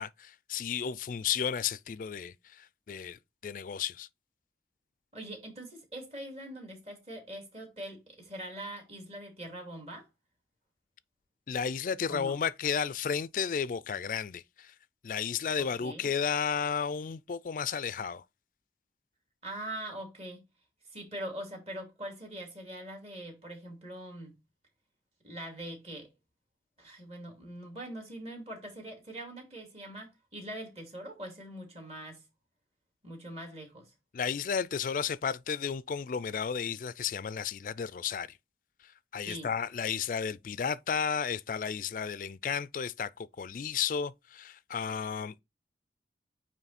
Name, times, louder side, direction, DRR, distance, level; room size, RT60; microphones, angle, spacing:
voice 1, 0.0-4.1 11.5-14.7 15.0-18.2 34.1-38.4 38.8-45.4, left 7 dB, 50° left, 0.3 m, -33 dB
voice 2, 5.1-10.1 12.1-12.4 15.6-16.1 19.4-20.4 20.9-24.3 25.2-26.1 26.8-32.2 33.0-33.9 39.2-39.5, right 1 dB, 35° right, 2.5 m, -43 dB
9.0 x 3.1 x 4.1 m
head